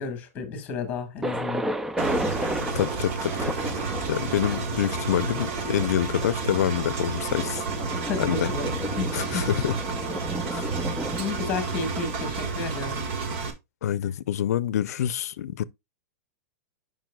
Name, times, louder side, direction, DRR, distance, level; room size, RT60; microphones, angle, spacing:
voice 1, 0.0-1.7 7.9-9.5 11.2-13.0, left 4 dB, 20° left, 1.7 m, -32 dB
Thunder, 1.2-13.0, right 1 dB, 5° right, 0.3 m, -34 dB
Engine, 2.0-13.5, right 4 dB, 50° right, 1.5 m, -31 dB
voice 2, 2.7-3.3 4.1-7.6 8.2-8.5 9.1-9.7 10.5-10.7 13.8-15.6, left 11 dB, 85° left, 0.5 m, -26 dB
sound 1, 3.4-10.0, equal, 25° right, 5.0 m, -41 dB
9.0 x 5.4 x 2.3 m
supercardioid pair, 155°, 8 cm